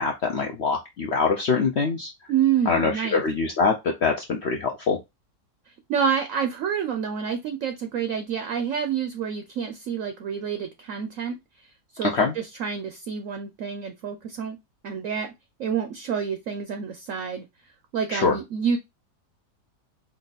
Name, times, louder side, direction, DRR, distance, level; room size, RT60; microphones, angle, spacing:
voice 1, 0.0-2.1 2.7-5.0 12.0-12.3 18.1-18.4, left 4 dB, 65° left, 2 dB, 0.6 m, -24 dB
voice 2, 2.3-3.2 5.9-11.4 11.9-14.6 14.8-15.3 15.6-17.5 17.9-18.8, right 7 dB, 65° right, 6 dB, 0.9 m, -28 dB
4.6 x 2.6 x 4.0 m, 0.22 s
omnidirectional pair, 1.8 m